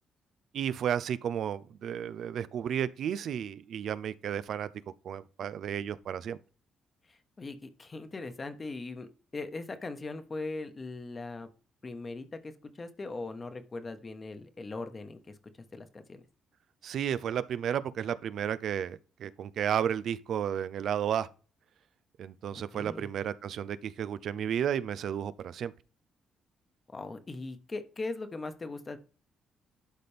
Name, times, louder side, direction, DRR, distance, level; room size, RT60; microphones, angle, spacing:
voice 1, 0.5-4.7 5.0-6.4 16.8-21.3 22.2-25.7, right 9 dB, 70° right, 0.5 m, -32 dB
voice 2, 7.1-11.5 11.8-15.3 15.7-16.2 22.5-23.1 26.9-29.0, left 3 dB, 30° left, 1.2 m, -40 dB
11.5 x 4.2 x 3.4 m
cardioid pair, 90°, 0 cm